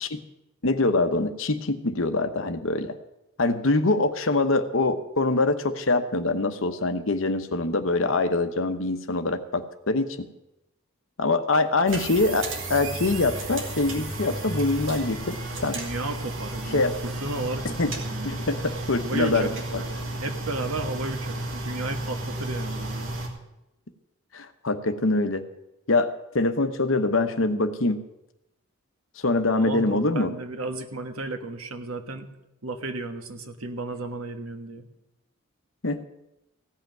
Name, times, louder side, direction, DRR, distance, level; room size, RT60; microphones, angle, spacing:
voice 1, 0.6-2.9 3.4-10.3 11.2-15.4 15.6-15.8 16.7-16.9 17.8-17.9 18.2-19.5 19.7-19.8 24.3-25.4 25.9-26.1 26.3-28.0 29.2-30.3 35.8-36.0, left 2 dB, 65° left, 9 dB, 1.0 m, -24 dB
sound 1, 11.9-23.3, right 2 dB, 65° right, 2.3 m, -33 dB
voice 2, 15.7-18.3 18.9-23.1 29.6-32.3 32.6-34.9, right 2 dB, 85° right, 6 dB, 1.5 m, -34 dB
16.0 x 5.8 x 9.1 m, 0.90 s
head